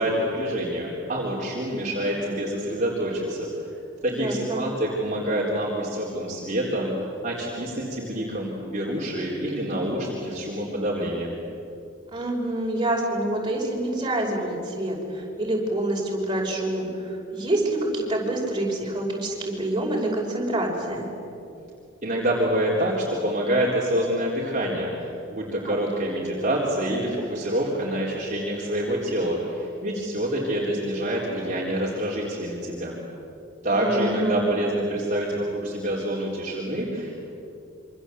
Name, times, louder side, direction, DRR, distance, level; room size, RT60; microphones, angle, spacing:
voice 1, 0.0-3.5 4.0-11.4 22.0-33.0 33.6-37.2, right 1 dB, 40° right, -5 dB, 4.1 m, -27 dB
voice 2, 4.1-4.6 12.1-21.1 25.6-25.8 33.7-34.4, right 1 dB, 25° right, -2 dB, 5.6 m, -27 dB
27.5 x 25.5 x 8.2 m, 2.8 s
head